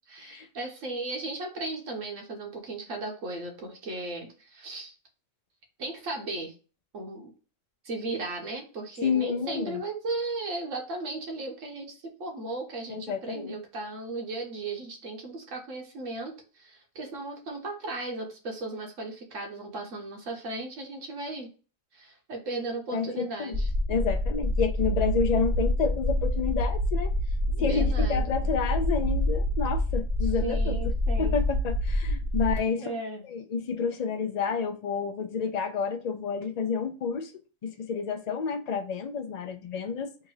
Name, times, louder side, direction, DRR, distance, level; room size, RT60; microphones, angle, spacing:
voice 1, 0.1-4.9 5.8-6.5 6.9-7.3 7.8-21.5 21.9-23.7 27.5-28.3 30.2-31.4 32.8-33.2, right 2 dB, 85° right, 1.5 m, -36 dB
voice 2, 9.0-9.8 12.9-13.6 22.9-23.5 23.9-27.1 27.6-30.9 31.2-32.9 33.2-37.3 37.6-40.1, left 6 dB, 55° left, 0.5 m, -29 dB
sound 1, 23.5-32.6, left 1 dB, 30° right, 1.7 m, -27 dB
3.7 x 2.5 x 4.6 m
omnidirectional pair, 1.3 m